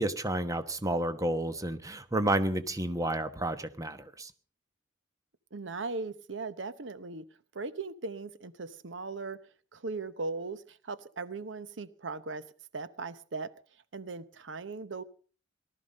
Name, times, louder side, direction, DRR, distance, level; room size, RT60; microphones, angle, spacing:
voice 1, 0.0-4.3, right 1 dB, 20° right, 1.1 m, -31 dB
voice 2, 5.5-7.2 7.5-9.4 9.7-12.4 12.7-13.5 13.9-15.0, right 3 dB, 75° right, 0.9 m, -38 dB
19.0 x 13.0 x 5.3 m
head